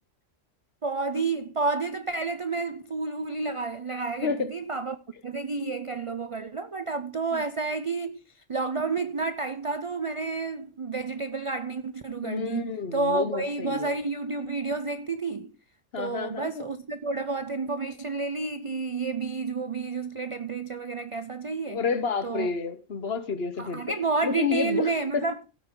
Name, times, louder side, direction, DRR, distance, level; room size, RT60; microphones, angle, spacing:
voice 1, 0.8-5.0 5.2-15.5 16.0-21.8 22.2-22.5 23.6-25.4, right 3 dB, 45° right, 0.4 m, -30 dB
voice 2, 12.2-13.9 15.9-16.7 21.7-23.8 24.2-25.3, left 5 dB, 55° left, 1.3 m, -30 dB
15.5 x 8.4 x 3.8 m
omnidirectional pair, 1.3 m